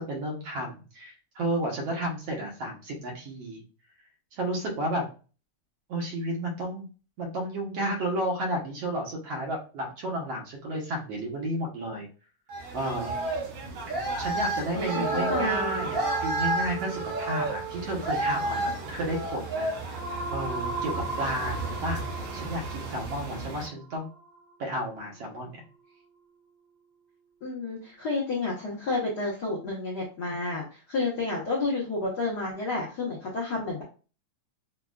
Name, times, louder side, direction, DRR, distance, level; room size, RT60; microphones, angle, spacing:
voice 1, 0.0-3.6 4.3-5.1 5.9-6.9 7.2-12.1 12.7-13.1 13.9-19.7 20.3-22.0 22.3-24.1 24.6-25.6, right 1 dB, 65° right, -1 dB, 1.8 m, -32 dB
sound 1, 12.5-23.7, right 2 dB, 85° right, 2.9 m, -32 dB
voice 2, 14.7-15.9 27.4-33.8, left 3 dB, 75° left, -5 dB, 0.9 m, -30 dB
sound 2, 14.8-25.0, right 4 dB, 40° right, 1.7 m, -36 dB
6.3 x 2.3 x 2.3 m, 0.35 s
omnidirectional pair, 3.5 m